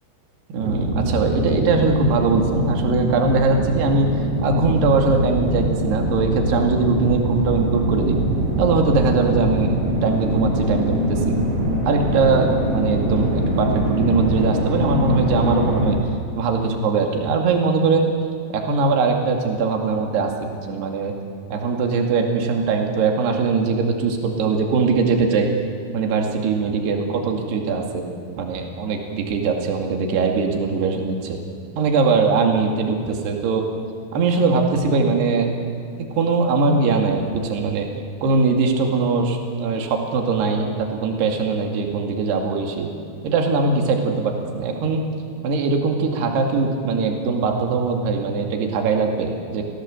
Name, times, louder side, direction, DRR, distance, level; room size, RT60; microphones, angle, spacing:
voice 1, 0.5-4.1 4.4-8.2 8.6-11.4 11.9-16.0 16.3-18.1 18.5-20.3 20.7-21.1 21.5-25.5 25.9-28.0 28.4-31.4 31.8-33.6 34.1-35.5 36.2-37.9 38.2-42.9 43.2-45.0 45.4-49.6, right 4 dB, 60° right, 2 dB, 4.1 m, -21 dB
sound 1, 0.6-15.9, equal, 90° right, 8.6 m, -23 dB
28.0 x 17.0 x 7.8 m, 2.2 s
omnidirectional pair, 5.7 m